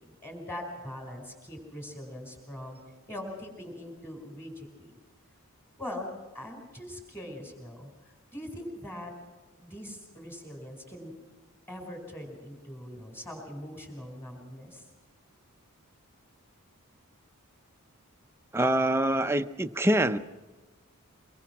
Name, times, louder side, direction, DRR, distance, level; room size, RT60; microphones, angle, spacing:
voice 1, 0.0-2.8 3.1-4.9 5.8-9.1 9.6-11.1 11.7-14.9, left 1 dB, 10° left, 3 dB, 4.7 m, -42 dB
voice 2, 18.5-20.2, right 1 dB, 10° right, 9 dB, 0.7 m, -25 dB
24.0 x 22.0 x 6.0 m, 1.2 s
head